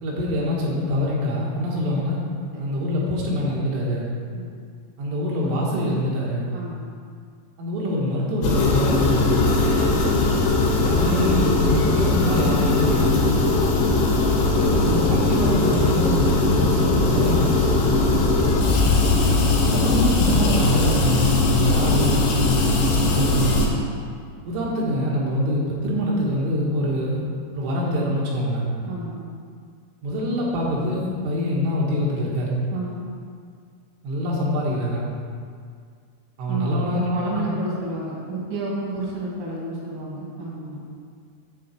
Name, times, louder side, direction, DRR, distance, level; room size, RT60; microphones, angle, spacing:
voice 1, 0.0-2.2 2.6-4.1 5.0-6.5 7.6-9.5 10.8-13.2 14.6-17.8 19.5-22.6 23.1-23.5 24.5-27.2 27.5-28.7 30.0-32.6 34.0-35.1 36.4-37.0 37.4-37.5, left 1 dB, 80° right, -4 dB, 4.1 m, -24 dB
voice 2, 6.5-6.8 9.6-10.1 13.4-13.7 18.1-18.5 21.5-21.7 23.0-23.3 28.8-29.2 32.7-33.0 36.5-40.8, right 2 dB, 45° right, -4 dB, 1.6 m, -31 dB
sound 1, 8.4-23.7, left 2 dB, 70° left, 3.4 m, -20 dB
10.0 x 3.9 x 7.5 m, 2.1 s
omnidirectional pair, 5.6 m